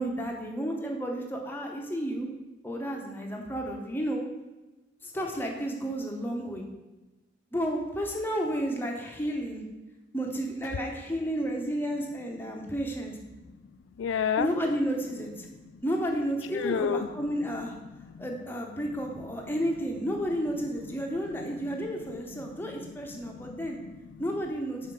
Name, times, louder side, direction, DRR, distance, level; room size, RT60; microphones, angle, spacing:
voice 1, 0.0-2.3 2.6-4.2 5.0-6.6 7.5-9.6 10.1-13.2 14.4-15.5 15.8-17.7 18.2-23.8 24.2-24.9, equal, 10° left, 1 dB, 0.9 m, -32 dB
voice 2, 14.0-14.5 15.6-15.8 16.5-17.1 17.9-18.3 21.0-24.2 24.8-24.9, left 7 dB, 80° left, 11 dB, 0.3 m, -34 dB
5.7 x 4.2 x 6.1 m, 1.1 s
head